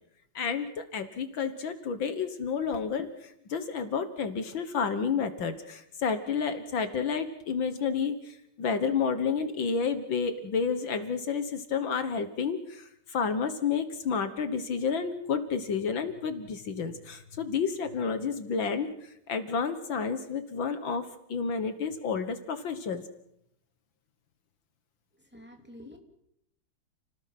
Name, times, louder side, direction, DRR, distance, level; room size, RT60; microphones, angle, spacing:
voice 1, 0.4-23.0, left 6 dB, 65° left, 9 dB, 2.1 m, -30 dB
voice 2, 25.3-26.0, equal, 5° right, 2 dB, 3.1 m, -48 dB
30.0 x 19.0 x 6.0 m, 0.78 s
omnidirectional pair, 2.3 m